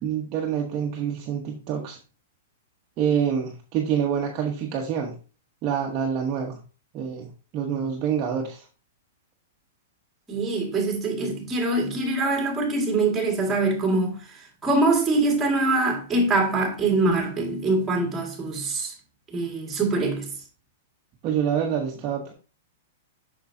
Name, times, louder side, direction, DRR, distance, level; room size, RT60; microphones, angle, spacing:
voice 1, 0.0-2.0 3.0-5.2 5.6-6.6 6.9-8.6 21.2-22.3, right 8 dB, 30° right, 1.0 m, -26 dB
voice 2, 10.3-18.9 19.3-20.3, right 2 dB, 10° right, 2.0 m, -24 dB
6.8 x 6.1 x 2.7 m
hypercardioid pair, 160°, 0 cm